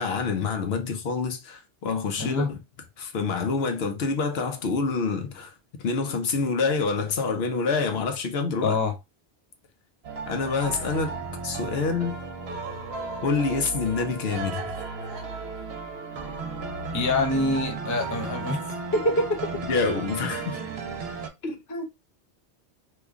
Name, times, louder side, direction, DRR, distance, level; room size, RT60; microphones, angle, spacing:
voice 1, 0.0-2.6 3.0-5.5 5.8-8.8 10.3-11.2 11.4-12.2 13.2-14.7 19.7-20.6 21.4-21.6, left 4 dB, 70° left, 0.9 m, -27 dB
voice 2, 2.2-2.5 8.6-8.9 16.9-18.6 18.9-19.6 21.7-21.8, left 2 dB, 25° left, 0.4 m, -25 dB
sound 1, 10.0-21.3, right 4 dB, 70° right, 0.9 m, -34 dB
3.1 x 2.2 x 3.5 m
omnidirectional pair, 1.1 m